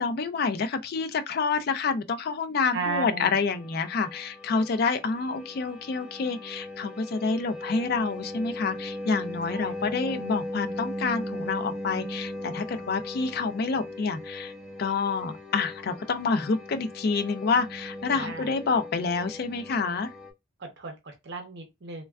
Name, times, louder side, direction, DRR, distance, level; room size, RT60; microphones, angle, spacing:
voice 1, 0.0-14.5 14.8-20.1, left 4 dB, 50° left, 0.4 m, -28 dB
voice 2, 2.6-3.4 9.5-10.2 18.1-18.5 20.6-22.0, right 4 dB, 55° right, 0.6 m, -35 dB
sound 1, 2.9-20.3, left 1 dB, ahead, 0.8 m, -38 dB
3.3 x 2.2 x 2.2 m
head